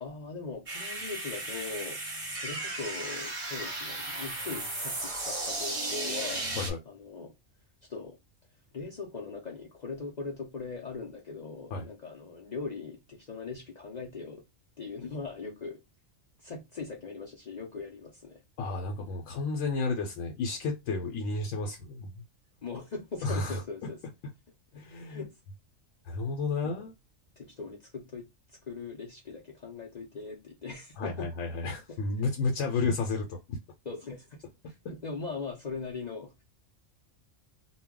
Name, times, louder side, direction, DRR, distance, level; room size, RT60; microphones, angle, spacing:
voice 1, 0.0-2.0 2.3-6.5 6.9-7.3 7.9-8.2 8.7-14.4 14.8-15.8 16.4-18.4 22.6-24.0 25.0-25.3 26.6-26.7 27.4-28.3 28.7-31.3 31.9-32.0 33.9-36.4, left 4 dB, 55° left, 0.5 m, -40 dB
sound 1, 0.7-6.7, right 2 dB, 35° right, 0.7 m, -35 dB
voice 2, 18.6-22.1 23.2-23.6 24.7-25.3 26.0-26.9 31.0-33.6, left 3 dB, 85° left, 1.0 m, -32 dB
2.3 x 2.1 x 3.6 m
omnidirectional pair, 1.3 m